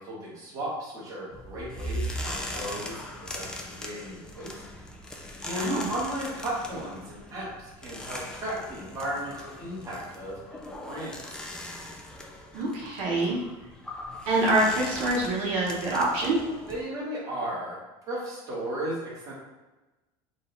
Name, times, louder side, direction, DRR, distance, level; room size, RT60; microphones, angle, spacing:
voice 1, 0.0-3.0 3.3-4.6 5.4-11.4 16.7-17.8 18.1-19.3, equal, 25° right, -6 dB, 1.4 m, -35 dB
sound 1, 1.3-16.8, equal, 5° left, 0.4 m, -39 dB
voice 2, 5.6-5.9 12.5-13.4 14.3-16.4, right 2 dB, 65° right, -4 dB, 0.9 m, -25 dB
3.9 x 2.4 x 3.9 m, 1.1 s
cardioid pair, 160°, 12 cm